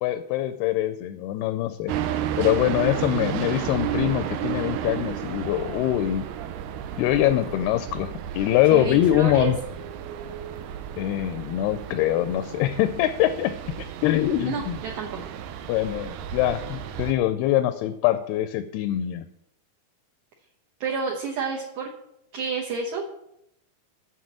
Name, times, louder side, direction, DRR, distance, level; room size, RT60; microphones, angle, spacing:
voice 1, 0.0-1.9 2.4-6.3 7.0-9.6 11.0-13.5 14.0-14.8 15.7-19.3, left 13 dB, 90° left, 10 dB, 2.6 m, -23 dB
sound 1, 1.9-17.1, right 10 dB, 90° right, 1.8 m, -33 dB
voice 2, 8.7-9.5 14.5-15.3 20.8-21.9 22.3-23.1, right 5 dB, 70° right, -1 dB, 1.9 m, -30 dB
7.4 x 6.1 x 7.2 m, 0.80 s
omnidirectional pair, 4.5 m